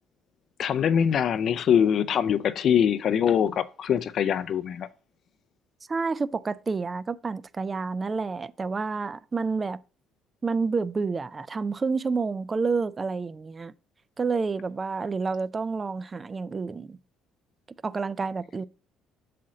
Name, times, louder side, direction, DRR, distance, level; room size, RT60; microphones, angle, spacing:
voice 1, 0.6-4.9, left 8 dB, 55° left, 0.4 m, -23 dB
voice 2, 5.9-9.8 10.4-13.7 14.2-17.0 17.8-18.6, right 4 dB, 25° right, 0.3 m, -29 dB
7.4 x 4.2 x 3.7 m
cardioid pair, 110°, 0 cm